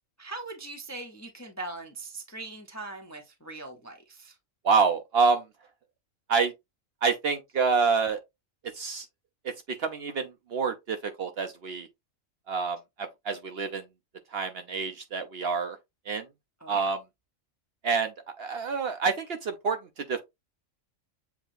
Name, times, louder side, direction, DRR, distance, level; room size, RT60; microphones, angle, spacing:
voice 1, 0.2-4.4 16.6-16.9, right 2 dB, 20° left, 0.6 m, -41 dB
voice 2, 4.6-5.4 6.3-6.5 7.0-8.2 8.7-9.1 9.4-11.9 12.5-13.8 14.3-15.8 16.1-16.3 16.7-17.0 17.8-18.1 18.4-20.2, right 5 dB, 60° right, 0.8 m, -27 dB
7.3 x 2.9 x 2.5 m
omnidirectional pair, 1.4 m